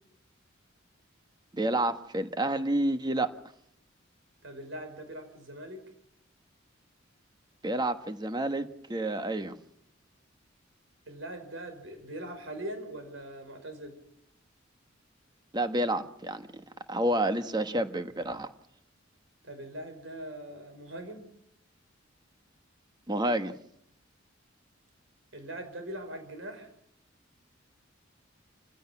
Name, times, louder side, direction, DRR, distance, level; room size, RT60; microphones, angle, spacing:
voice 1, 1.5-3.3 7.6-9.6 15.5-18.5 23.1-23.5, right 1 dB, 20° right, 1.2 m, -29 dB
voice 2, 4.4-5.8 11.1-14.0 19.4-21.3 25.3-26.7, right 1 dB, 75° right, 5.5 m, -41 dB
28.0 x 16.0 x 5.9 m
head